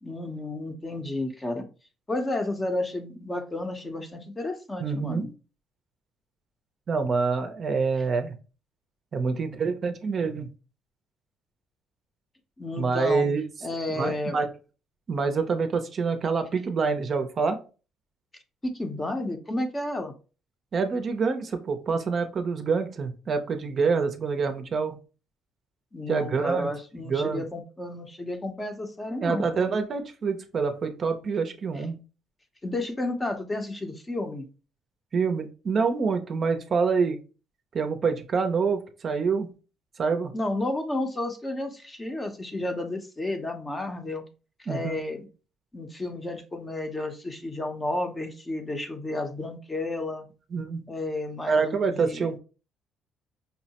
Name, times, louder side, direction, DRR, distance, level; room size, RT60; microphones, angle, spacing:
voice 1, 0.0-1.6 2.1-5.3 12.6-13.3 13.6-14.4 18.6-20.1 25.9-29.5 32.6-34.5 40.3-44.2 44.6-45.3 45.7-50.3 50.9-52.3, left 2 dB, 20° left, 6 dB, 0.6 m, -32 dB
voice 2, 4.8-5.3 6.9-8.3 9.1-10.5 12.8-13.5 13.9-14.5 15.1-17.6 20.7-25.0 26.1-26.7 27.1-27.4 29.2-32.0 35.1-37.2 37.7-39.5 40.0-40.3 44.7-45.0 50.5-50.8 51.4-52.4, right 5 dB, 40° right, 7 dB, 0.5 m, -26 dB
5.4 x 2.1 x 2.8 m, 0.34 s
cardioid pair, 110°, 0 cm